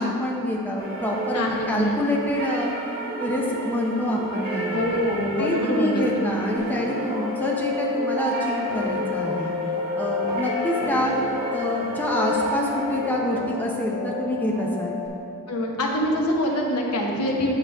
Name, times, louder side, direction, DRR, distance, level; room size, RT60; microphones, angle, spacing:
voice 1, 0.0-2.7 3.2-4.8 5.4-9.6 10.0-11.3 11.5-15.0, left 1 dB, 10° left, -3 dB, 0.8 m, -26 dB
sound 1, 0.8-13.1, right 1 dB, 40° right, 1.7 m, -34 dB
voice 2, 1.3-1.9 4.7-6.3 15.5-17.6, equal, 85° left, 0 dB, 1.1 m, -25 dB
sound 2, 6.6-15.1, left 3 dB, 15° right, 1.3 m, -29 dB
8.2 x 6.8 x 3.5 m, 2.7 s
head